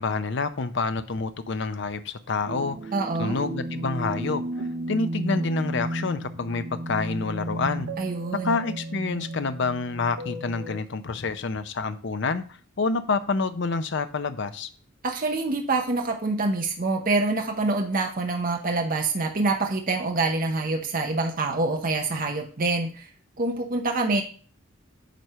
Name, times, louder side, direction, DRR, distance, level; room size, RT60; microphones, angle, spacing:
voice 1, 0.0-2.9 3.2-4.4 4.9-7.9 8.4-12.4 12.8-14.7, left 4 dB, 55° left, 11 dB, 0.6 m, -28 dB
sound 1, 2.5-10.8, right 1 dB, 85° right, 0.7 m, -33 dB
voice 2, 2.9-3.4 8.0-8.6 15.0-23.1 23.4-24.2, right 3 dB, 40° right, 3 dB, 0.8 m, -26 dB
9.1 x 3.2 x 5.5 m, 0.40 s
head